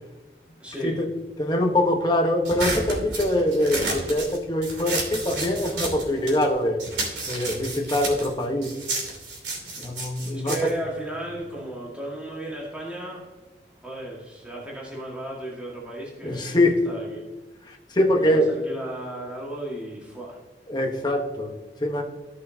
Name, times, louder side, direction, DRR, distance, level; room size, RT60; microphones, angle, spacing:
voice 1, 0.6-1.0 10.3-13.3 13.8-17.2 18.2-20.4, right 1 dB, 5° right, 1.9 m, -34 dB
voice 2, 1.4-6.9 7.3-8.8 9.8-10.7 16.2-16.8 17.7-18.5 20.7-22.0, left 1 dB, 25° left, 1.2 m, -23 dB
sound 1, 2.5-6.5 6.8-11.6, right 2 dB, 85° right, 2.8 m, -31 dB
15.0 x 6.4 x 2.8 m
head